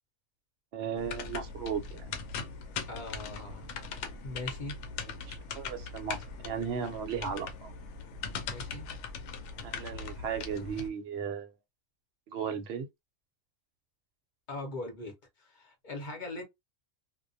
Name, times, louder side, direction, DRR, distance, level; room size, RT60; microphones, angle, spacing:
voice 1, 0.7-2.2 5.0-7.7 9.6-11.5 12.3-12.9, right 7 dB, 60° right, 0.8 m, -36 dB
sound 1, 1.0-10.9, left 5 dB, 90° left, 1.0 m, -40 dB
voice 2, 2.9-3.7 4.2-4.7 8.5-8.9 14.5-15.1 15.4-16.4, left 2 dB, 45° left, 0.8 m, -40 dB
2.2 x 2.1 x 2.5 m
omnidirectional pair, 1.3 m